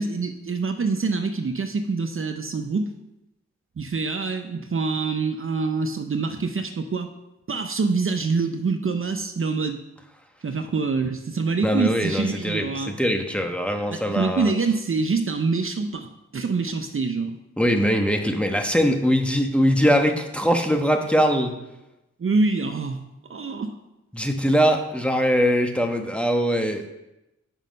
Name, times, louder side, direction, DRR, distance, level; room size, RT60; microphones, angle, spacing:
voice 1, 0.0-2.9 3.8-7.1 7.5-9.8 10.4-12.9 13.9-17.4 22.2-23.0 23.3-23.7, right 4 dB, 45° right, 6 dB, 0.7 m, -25 dB
voice 2, 11.6-14.5 17.6-21.5 24.1-26.9, equal, 5° left, 4 dB, 1.2 m, -22 dB
7.2 x 5.5 x 5.3 m, 0.93 s
cardioid pair, 50°, 29 cm